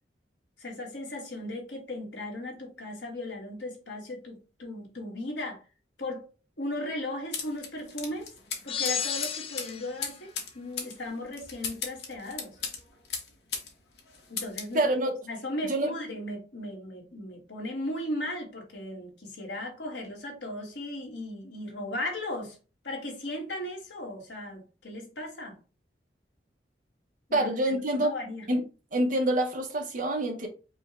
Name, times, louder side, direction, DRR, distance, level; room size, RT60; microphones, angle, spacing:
voice 1, 0.6-5.6 6.0-6.3 6.6-8.3 8.6-12.6 14.3-14.9 15.2-22.6 22.8-25.6 27.3-28.5, left 1 dB, 80° left, 1.6 m, -37 dB
sound 1, 7.3-13.7 14.0-14.7, left 5 dB, 65° left, 1.0 m, -37 dB
sound 2, 8.7-10.0, left 7 dB, 30° left, 0.5 m, -32 dB
voice 2, 14.7-15.1 15.6-15.9 27.3-28.1 28.5-28.6 28.9-30.5, right 1 dB, 50° right, 1.0 m, -26 dB
5.0 x 2.3 x 3.6 m
head